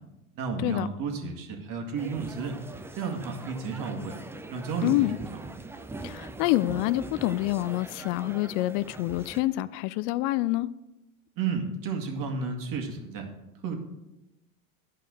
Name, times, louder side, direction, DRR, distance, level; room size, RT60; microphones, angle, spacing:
voice 1, 0.4-2.6 3.0-4.1 4.5-4.9 11.4-13.3 13.6-13.7, right 5 dB, 50° right, 2.2 m, -32 dB
sound 1, 2.0-9.4, right 2 dB, 5° right, 0.4 m, -42 dB
voice 2, 4.8-5.2 6.0-10.7, left 17 dB, 55° left, 0.5 m, -27 dB
11.0 x 5.4 x 6.5 m
supercardioid pair, 110°, 43 cm